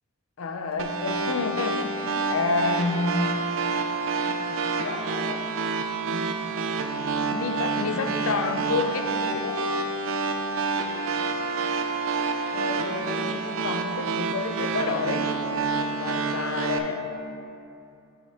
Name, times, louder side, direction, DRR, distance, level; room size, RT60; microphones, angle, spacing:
voice 1, 0.4-3.5 4.3-5.5 6.1-6.3 6.8-6.9 7.3-9.6 12.5-17.0, left 3 dB, 70° left, 5 dB, 0.5 m, -30 dB
sound 1, 0.8-16.8, right 4 dB, 65° right, 0.5 m, -28 dB
9.4 x 5.0 x 3.7 m, 2.7 s
head